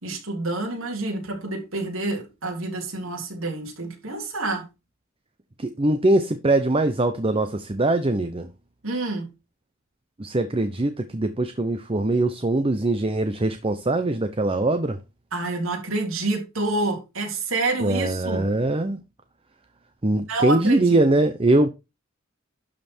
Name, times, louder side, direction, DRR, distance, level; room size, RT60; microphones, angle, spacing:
voice 1, 0.0-4.6 8.8-9.3 15.3-18.5 20.3-21.0, right 2 dB, 80° right, 3.4 m, -28 dB
voice 2, 5.6-8.5 10.2-15.0 17.8-19.0 20.0-21.7, right 2 dB, 30° right, 0.8 m, -22 dB
12.0 x 5.6 x 4.4 m
head